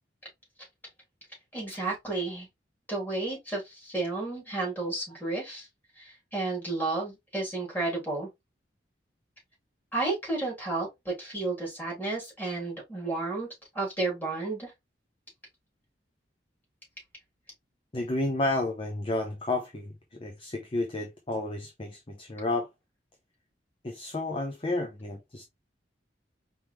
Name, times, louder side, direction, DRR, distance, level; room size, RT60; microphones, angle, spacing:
voice 1, 1.5-2.5 2.9-5.7 6.0-8.3 9.9-13.5 13.7-14.7, right 3 dB, 10° left, 3.0 m, -32 dB
voice 2, 17.9-22.7 23.8-25.4, left 2 dB, 30° left, 0.6 m, -31 dB
4.7 x 3.5 x 3.1 m
head